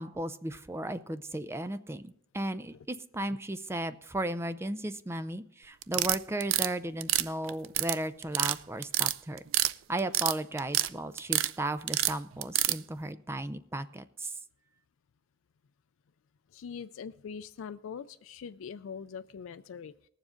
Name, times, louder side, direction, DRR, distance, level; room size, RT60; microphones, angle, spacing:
voice 1, 0.0-9.4 9.9-14.3, right 1 dB, 15° right, 12 dB, 0.4 m, -35 dB
sound 1, 5.8-6.7 7.0-8.0 8.2-8.6 8.8-9.7 10.0-10.9 11.2-11.5 11.9-12.8, right 14 dB, 70° right, 0.4 m, -27 dB
voice 2, 16.5-19.9, left 6 dB, 75° left, 10 dB, 0.4 m, -42 dB
19.5 x 7.3 x 3.8 m, 0.66 s
head